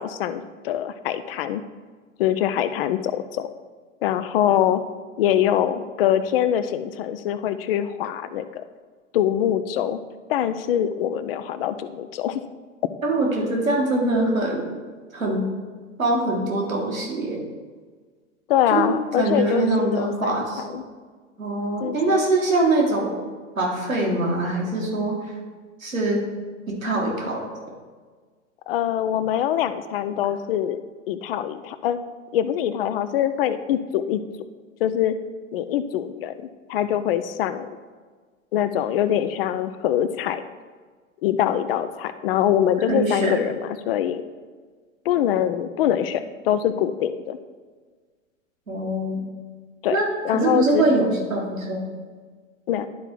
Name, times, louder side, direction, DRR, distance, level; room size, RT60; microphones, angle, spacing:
voice 1, 0.0-1.6 2.2-3.5 4.0-4.8 5.2-8.6 9.1-10.0 10.3-12.4 18.5-20.8 21.8-22.3 28.7-30.8 31.1-32.0 32.3-34.2 34.8-35.2 35.5-37.7 38.5-40.4 41.2-44.2 45.1-47.4 49.8-50.0 50.2-50.9 52.7-52.9, left 10 dB, 45° left, 12 dB, 0.5 m, -24 dB
voice 2, 13.0-14.6 15.1-15.5 16.0-17.4 18.7-20.6 21.4-23.2 23.6-25.2 25.8-26.2 26.7-27.4 42.9-43.4 48.7-49.2 49.9-51.8, right 2 dB, 85° right, -2 dB, 2.0 m, -23 dB
11.0 x 4.4 x 3.9 m, 1.5 s
figure-of-eight pair, 95°, 39 cm